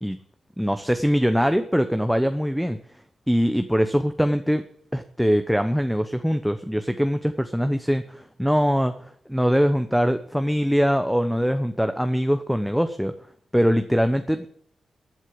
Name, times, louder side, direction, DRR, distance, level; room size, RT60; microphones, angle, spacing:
voice 1, 0.6-2.8 3.3-4.6 4.9-8.9 9.3-13.1 13.5-14.5, equal, ahead, 8 dB, 0.9 m, -22 dB
15.0 x 8.2 x 7.6 m, 0.66 s
cardioid pair, 85°, 0 cm